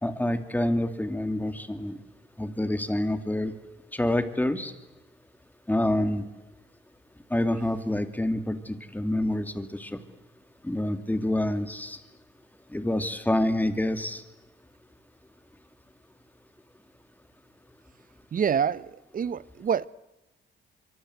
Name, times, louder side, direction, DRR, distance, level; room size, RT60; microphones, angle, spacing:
voice 1, 0.0-1.9 2.4-3.5 3.9-4.7 5.7-6.2 7.3-10.0 10.6-12.0 12.7-14.2, left 1 dB, 10° left, 2.6 m, -27 dB
voice 2, 18.3-19.9, right 7 dB, 45° right, 0.9 m, -27 dB
25.0 x 24.0 x 7.9 m
cardioid pair, 90°, 20 cm